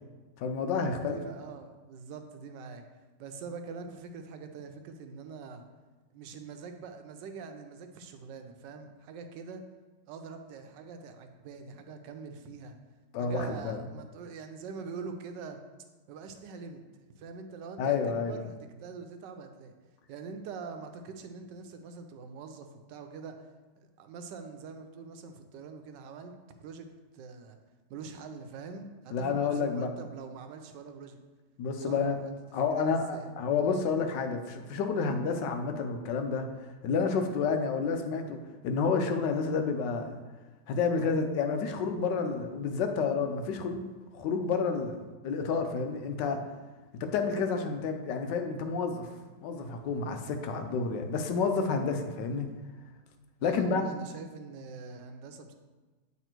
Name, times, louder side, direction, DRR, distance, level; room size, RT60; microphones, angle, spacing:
voice 1, 0.4-1.2 13.1-13.8 17.8-18.4 29.1-29.9 31.6-32.2 32.5-36.5 36.8-38.4 38.6-40.1 40.7-43.9 44.1-45.0 45.2-46.4 46.9-49.1 49.4-52.5 53.4-53.8, left 5 dB, 90° left, 6 dB, 1.3 m, -29 dB
voice 2, 1.0-2.8 3.2-5.6 6.1-9.6 10.1-12.8 13.2-15.6 16.1-16.8 17.2-19.7 20.1-23.5 23.8-26.9 27.1-27.6 27.9-31.2 31.9-32.4 32.7-33.3 33.6-33.8 53.4-55.5, right 5 dB, 85° right, 6 dB, 1.3 m, -44 dB
8.3 x 3.3 x 4.4 m, 1.3 s
omnidirectional pair, 1.8 m